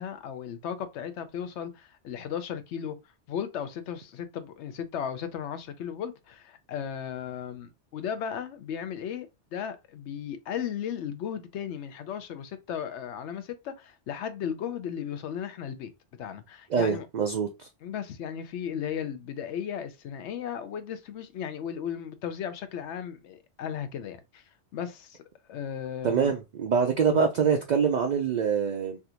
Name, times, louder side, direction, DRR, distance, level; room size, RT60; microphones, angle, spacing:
voice 1, 0.0-3.0 3.3-15.9 16.2-17.1 17.8-24.4 24.7-25.2 25.5-26.3 27.1-27.2, left 8 dB, 75° left, 0.9 m, -35 dB
voice 2, 16.7-17.7 26.0-29.0, right 6 dB, 60° right, 0.4 m, -25 dB
3.3 x 2.5 x 2.8 m
omnidirectional pair, 1.2 m